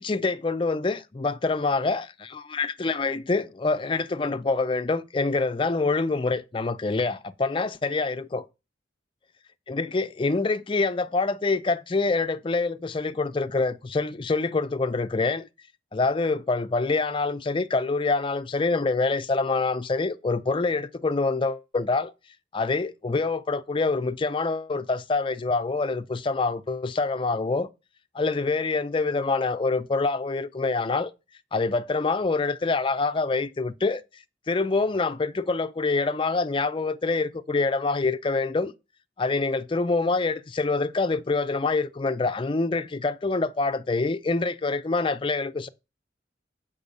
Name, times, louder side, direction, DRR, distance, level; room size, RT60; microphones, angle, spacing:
voice 1, 0.0-8.4 9.7-15.5 15.9-22.1 22.5-27.7 28.1-31.1 31.5-34.0 34.5-38.7 39.2-45.7, left 3 dB, 30° left, 0.4 m, -26 dB
6.8 x 5.4 x 5.2 m
head